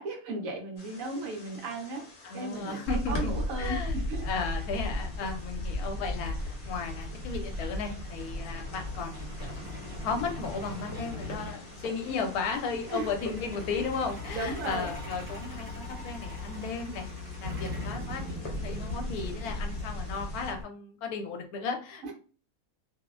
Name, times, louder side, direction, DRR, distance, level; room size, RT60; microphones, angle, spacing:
voice 1, 0.0-2.0 2.3-4.2 12.9-13.1 14.3-14.9 22.0-22.1, right 2 dB, 70° right, 1 dB, 1.1 m, -35 dB
sound 1, 0.8-20.5, left 3 dB, 55° left, 1.0 m, -49 dB
voice 2, 2.2-3.3 3.6-4.0 4.2-9.7 10.0-17.1 17.4-22.1, left 4 dB, 85° left, 4 dB, 1.1 m, -35 dB
Truck, 2.9-20.6, left 1 dB, 45° right, 1.4 m, -36 dB
3.1 x 2.1 x 2.3 m, 0.38 s
omnidirectional pair, 1.5 m